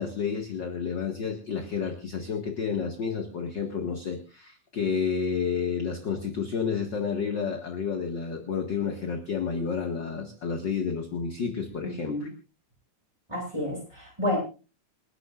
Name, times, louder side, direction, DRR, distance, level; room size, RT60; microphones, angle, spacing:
voice 1, 0.0-12.3, left 6 dB, 40° left, 3 dB, 2.2 m, -30 dB
voice 2, 11.8-12.3 13.3-14.4, left 1 dB, 10° right, -1 dB, 8.0 m, -30 dB
28.5 x 12.0 x 2.5 m, 0.33 s
omnidirectional pair, 3.3 m